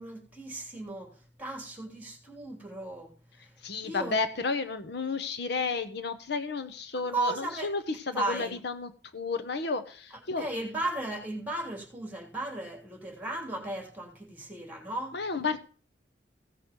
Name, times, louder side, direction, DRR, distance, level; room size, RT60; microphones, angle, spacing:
voice 1, 0.0-3.5 3.8-4.2 7.1-7.7 8.1-8.5 10.4-15.2, right 2 dB, 10° right, 3.2 m, -35 dB
voice 2, 3.6-10.5 15.1-15.6, left 4 dB, 65° left, 0.8 m, -32 dB
16.0 x 6.3 x 5.2 m
head